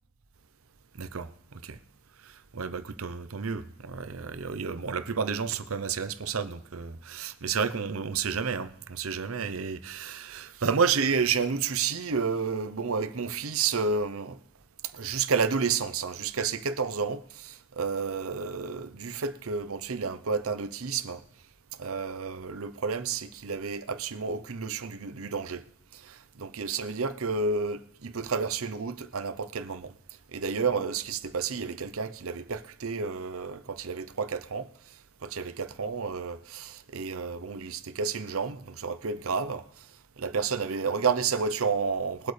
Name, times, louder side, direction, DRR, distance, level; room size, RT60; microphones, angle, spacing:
voice 1, 1.0-1.3 1.6-1.8 2.2-14.4 14.9-21.2 21.8-25.6 25.9-29.9 30.3-34.7 35.2-39.6 40.2-42.3, right 5 dB, 80° right, 0.8 m, -31 dB
21.5 x 8.3 x 3.3 m
head